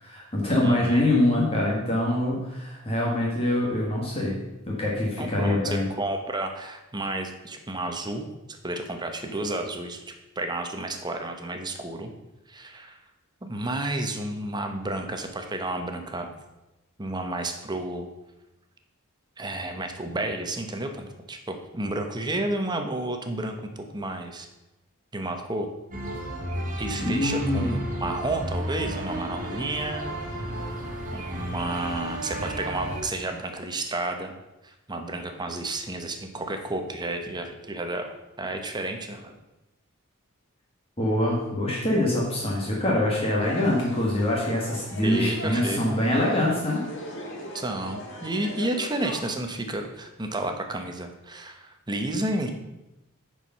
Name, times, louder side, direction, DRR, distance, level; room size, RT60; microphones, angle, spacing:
voice 1, 0.0-4.4 4.7-5.9 27.0-27.8 41.0-46.8, left 1 dB, 25° left, -3 dB, 1.6 m, -24 dB
voice 2, 0.6-1.1 5.2-8.3 8.6-10.0 10.4-12.1 12.5-13.0 13.4-16.3 17.0-18.1 19.4-24.5 25.1-25.7 26.8-30.8 31.1-34.3 34.6-38.1 38.4-39.4 45.0-46.0 47.5-52.5, right 2 dB, 20° right, 5 dB, 0.9 m, -31 dB
sound 1, 25.9-33.0, right 1 dB, 40° right, 1.5 m, -33 dB
sound 2, 43.4-49.2, left 1 dB, 60° left, 1.9 m, -39 dB
9.6 x 4.8 x 5.5 m, 0.98 s
head